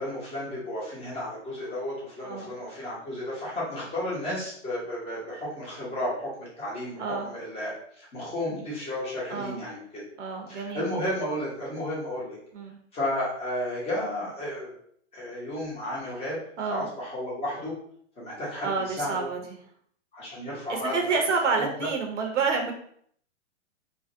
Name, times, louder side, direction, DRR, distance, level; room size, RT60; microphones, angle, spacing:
voice 1, 0.0-10.0 10.5-12.4 12.9-14.8 15.1-16.4 16.7-17.7 18.2-19.3 20.1-21.2 21.6-21.9, left 1 dB, 15° left, -6 dB, 0.8 m, -33 dB
voice 2, 7.0-7.3 9.3-9.6 10.2-10.8 12.5-12.8 16.6-16.9 18.6-19.6 20.7-22.7, right 4 dB, 75° right, 2 dB, 0.7 m, -28 dB
2.5 x 2.0 x 2.5 m, 0.64 s
hypercardioid pair, 125°, 37 cm